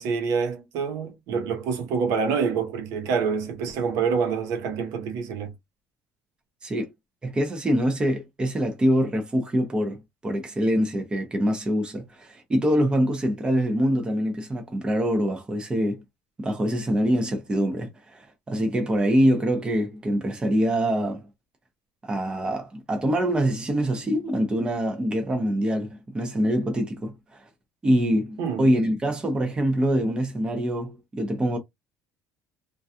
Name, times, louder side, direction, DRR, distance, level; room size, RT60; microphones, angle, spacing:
voice 1, 0.0-5.5 28.4-28.7, right 5 dB, 75° right, 0.8 m, -26 dB
voice 2, 7.2-16.0 16.4-21.2 22.0-27.4 27.8-31.6, equal, 15° right, 0.6 m, -24 dB
2.4 x 2.2 x 2.6 m
cardioid pair, 145°, 6 cm